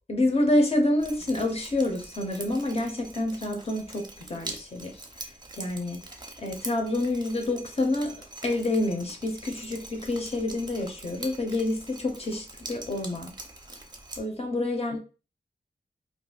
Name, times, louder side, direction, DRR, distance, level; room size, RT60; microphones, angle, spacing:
voice 1, 0.1-5.0 5.6-6.0 6.4-8.2 8.4-13.3 14.2-15.0, left 1 dB, 35° left, 0.7 m, -28 dB
Drip, 1.0-14.2, right 2 dB, 25° right, 0.6 m, -44 dB
2.5 x 2.0 x 3.8 m
wide cardioid pair, 100°, 18 cm